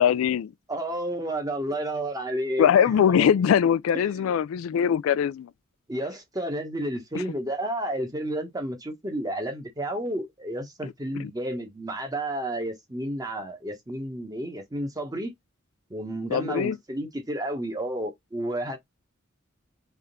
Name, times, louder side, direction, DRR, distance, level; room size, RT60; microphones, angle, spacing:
voice 1, 0.0-0.5 2.6-5.5 11.2-11.3 16.3-16.8, left 8 dB, 75° left, 0.3 m, -22 dB
voice 2, 0.7-2.7 3.2-3.3 3.9-4.4 5.9-15.3 15.9-18.8, right 1 dB, 20° right, 1.1 m, -31 dB
3.6 x 3.4 x 4.1 m
head